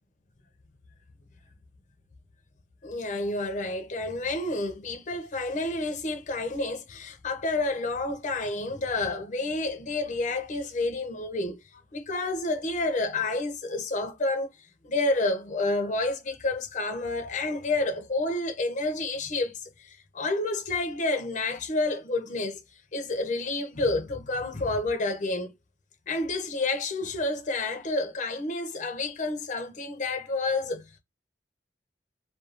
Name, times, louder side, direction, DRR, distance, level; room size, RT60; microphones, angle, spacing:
voice 1, 2.8-11.6 11.9-14.5 14.8-19.5 19.8-22.6 22.9-25.5 26.1-30.8, left 2 dB, 45° left, 0.5 m, -29 dB
2.4 x 2.2 x 2.8 m
head